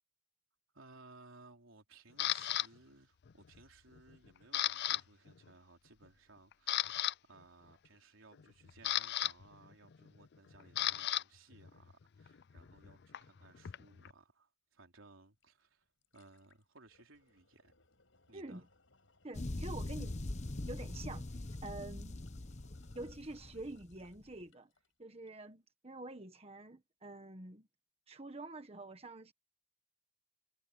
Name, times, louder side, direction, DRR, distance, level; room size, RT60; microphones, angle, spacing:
voice 1, 0.7-17.7 18.3-18.7, right 3 dB, 85° right, 3.6 m, -61 dB
Camera, 2.2-2.7 3.3-3.6 3.9-5.0 5.3-5.5 6.0-6.1 6.5-7.1 8.3-11.2 11.5-14.1, left 13 dB, 55° left, 0.4 m, -36 dB
sound 1, 15.4-15.5 15.8-24.9 25.3-25.4, left 3 dB, 75° left, 5.3 m, -70 dB
voice 2, 19.2-20.2 20.7-21.2 21.6-22.2 22.9-24.7 25.0-27.7 28.1-29.3, right 2 dB, 30° right, 1.5 m, -47 dB
sound 2, 19.3-24.2, left 2 dB, 35° left, 0.9 m, -42 dB
head